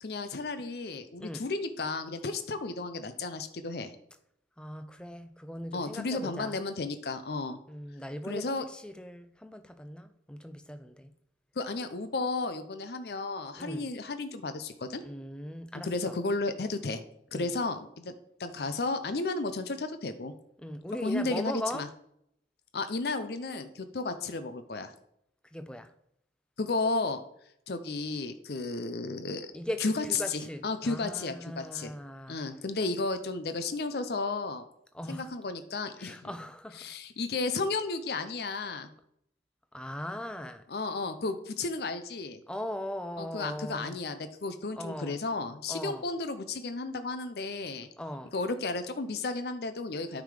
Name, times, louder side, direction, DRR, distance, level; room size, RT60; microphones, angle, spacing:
voice 1, 0.0-3.9 5.7-7.6 8.2-8.6 11.6-15.0 15.8-17.0 17.3-18.1 18.4-20.3 21.0-21.9 22.7-24.9 26.6-27.2 27.7-29.5 29.8-32.0 32.3-34.6 35.1-36.2 36.8-38.9 40.7-42.4 43.2-47.9 48.3-50.2, left 3 dB, 60° left, 0.6 m, -33 dB
voice 2, 4.6-6.6 7.7-11.1 13.6-13.9 15.0-16.2 17.3-17.6 20.6-21.9 25.5-25.9 29.5-32.4 34.9-35.3 36.0-36.9 39.7-40.6 42.5-44.0 44.8-45.2 45.7-46.0 48.0-48.3, equal, 5° left, 0.4 m, -39 dB
9.2 x 3.7 x 4.9 m
head